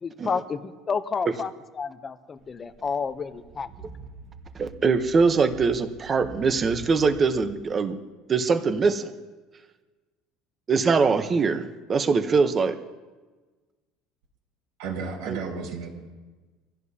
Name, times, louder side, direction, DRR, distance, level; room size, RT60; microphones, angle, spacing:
voice 1, 0.0-1.5 1.8-3.7, left 5 dB, 20° left, 11 dB, 0.6 m, -30 dB
sound 1, 2.4-7.8, right 3 dB, 60° right, 3.0 m, -45 dB
voice 2, 4.5-8.0 8.3-9.1 10.7-12.8 15.3-15.4, right 4 dB, 20° right, 9 dB, 0.8 m, -22 dB
voice 3, 14.8-15.9, right 5 dB, 90° right, -4 dB, 5.8 m, -32 dB
26.0 x 16.0 x 2.8 m, 1.3 s
cardioid pair, 180°, 0 cm